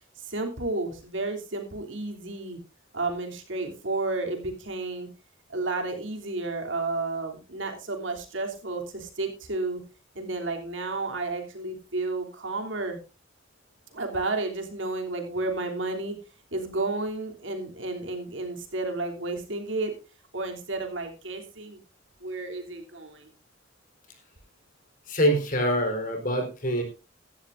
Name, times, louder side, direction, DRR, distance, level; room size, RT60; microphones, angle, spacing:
voice 1, 0.2-2.6 2.9-5.1 5.5-9.8 10.1-13.0 13.9-16.1 16.5-19.9 20.3-21.8 22.2-23.3, right 2 dB, 80° right, 3 dB, 3.1 m, -32 dB
voice 2, 25.1-26.8, equal, 45° left, 5 dB, 4.0 m, -25 dB
16.5 x 12.0 x 2.6 m, 0.31 s
head